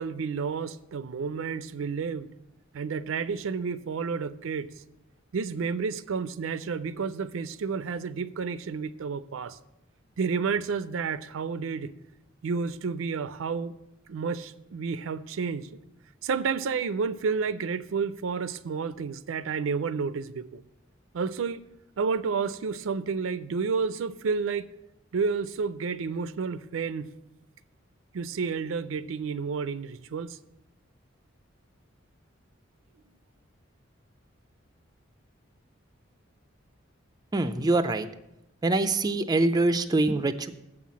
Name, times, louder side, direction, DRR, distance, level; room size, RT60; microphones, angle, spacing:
voice 1, 0.0-2.3 2.7-4.7 5.3-9.6 10.2-11.9 12.4-13.7 14.1-15.7 16.2-20.6 21.1-21.6 22.0-24.7 25.1-27.1 28.1-30.4, right 5 dB, 80° right, 15 dB, 0.4 m, -30 dB
voice 2, 37.3-38.1 38.6-40.5, right 2 dB, 20° right, 10 dB, 0.3 m, -24 dB
7.7 x 5.8 x 7.3 m, 0.90 s
head